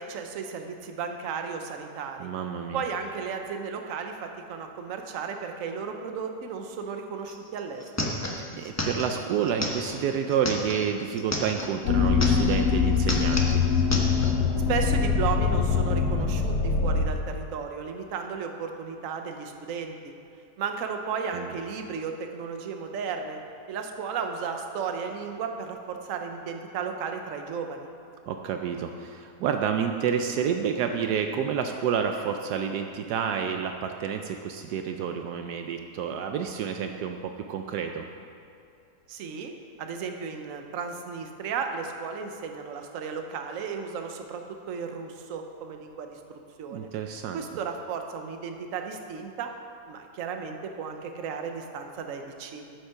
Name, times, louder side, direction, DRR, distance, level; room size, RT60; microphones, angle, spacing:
voice 1, 0.0-2.3 2.7-8.2 14.7-20.1 20.6-23.4 23.7-27.9 39.1-39.5 39.8-46.9 47.3-49.5 49.9-52.7, right 6 dB, 60° right, 5 dB, 1.1 m, -34 dB
voice 2, 2.2-2.8 8.5-13.6 21.3-21.5 28.3-38.0 46.7-47.4, right 7 dB, 75° right, 5 dB, 1.1 m, -29 dB
sound 1, 7.3-7.4 7.6-11.7 12.1-12.7 12.9-14.3, left 1 dB, 15° left, 0.7 m, -32 dB
sound 2, 11.8-17.1, left 5 dB, 70° left, 1.5 m, -23 dB
8.9 x 7.9 x 5.8 m, 2.5 s
omnidirectional pair, 1.8 m